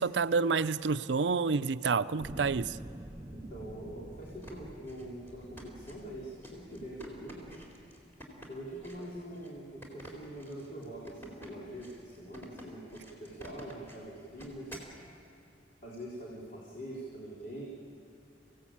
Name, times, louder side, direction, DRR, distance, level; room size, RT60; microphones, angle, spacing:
voice 1, 0.0-2.8, right 4 dB, 75° right, 13 dB, 0.5 m, -29 dB
sound 1, 2.2-7.5 8.2-8.3, right 1 dB, 15° right, 0.6 m, -47 dB
voice 2, 3.3-7.5 8.3-14.7 15.8-17.7, right 1 dB, 50° left, -6 dB, 3.7 m, -44 dB
sound 2, 4.2-15.0, equal, 15° left, 4.1 m, -50 dB
25.5 x 16.5 x 8.8 m, 2.8 s
head